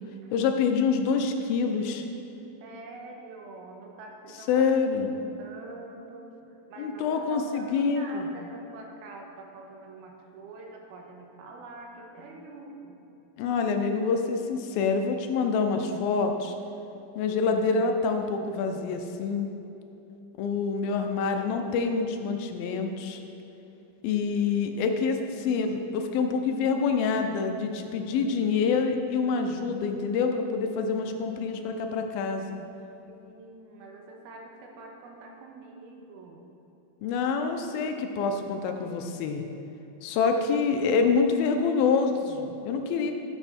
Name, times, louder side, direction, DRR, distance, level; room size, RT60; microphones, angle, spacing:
voice 1, 0.3-2.0 4.5-5.2 6.8-8.3 13.4-16.5 17.2-19.5 20.4-23.2 24.0-32.6 37.0-39.4 40.0-43.1, left 5 dB, 80° left, 5 dB, 2.4 m, -26 dB
voice 2, 2.6-4.6 5.0-13.0 33.1-36.5, right 2 dB, 85° right, 1 dB, 2.9 m, -45 dB
12.0 x 6.9 x 4.3 m, 3.0 s
omnidirectional pair, 4.3 m